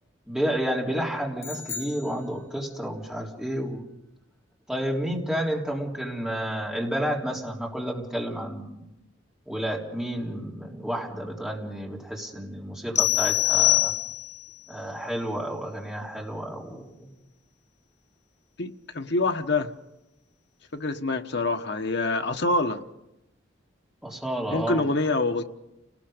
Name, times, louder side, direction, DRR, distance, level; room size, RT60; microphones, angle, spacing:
voice 1, 0.3-3.9 4.7-8.8 9.5-13.9 14.7-17.1 24.0-24.8, equal, 5° right, 3.6 m, -31 dB
sound 1, 1.4-2.9, left 5 dB, 15° left, 2.8 m, -39 dB
sound 2, 13.0-14.5, left 15 dB, 40° left, 1.1 m, -23 dB
voice 2, 18.6-19.7 20.7-22.8 24.5-25.4, left 2 dB, 65° left, 1.2 m, -26 dB
29.5 x 19.5 x 5.1 m
head